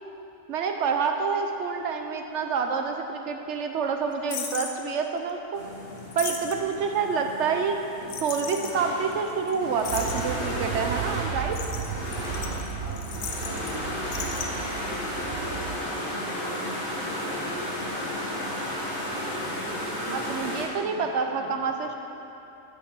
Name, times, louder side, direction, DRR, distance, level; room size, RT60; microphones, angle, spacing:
voice 1, 0.5-5.6 6.2-7.8 8.2-11.6 20.1-21.9, right 5 dB, 65° right, 4 dB, 0.7 m, -27 dB
sound 1, 4.3-4.7 6.0-6.7 8.1-8.8 9.1-9.2 9.5-9.6 9.8-10.5 11.4-13.8 14.0-14.5, left 7 dB, 75° left, 1.0 m, -36 dB
sound 2, 5.5-20.7, left 1 dB, 50° left, 1.6 m, -34 dB
sound 3, 9.8-15.8, right 8 dB, 85° right, 1.1 m, -35 dB
voice 2, 12.3-14.7 15.1-19.0 19.4-21.9, equal, 15° left, -4 dB, 0.8 m, -44 dB
6.3 x 6.0 x 5.9 m, 2.9 s
omnidirectional pair, 1.5 m